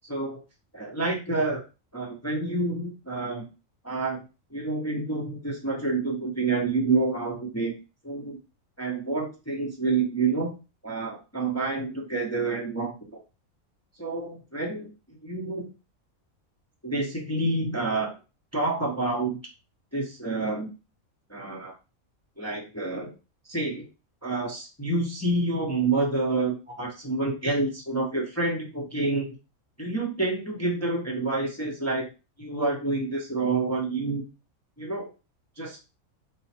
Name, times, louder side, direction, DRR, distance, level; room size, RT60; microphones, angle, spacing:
voice 1, 0.1-0.4 0.7-1.6 1.9-3.5 3.8-4.2 4.5-7.7 8.0-8.4 8.8-10.6 10.8-12.9 14.0-15.7 16.8-18.2 18.5-19.4 19.9-20.7 21.3-21.7 22.4-23.1 23.5-23.9 24.2-29.3 29.8-32.1 32.4-34.3 34.8-35.1 35.6-35.8, right 3 dB, 15° left, -1 dB, 0.6 m, -28 dB
3.8 x 2.1 x 4.2 m, 0.30 s
omnidirectional pair, 1.4 m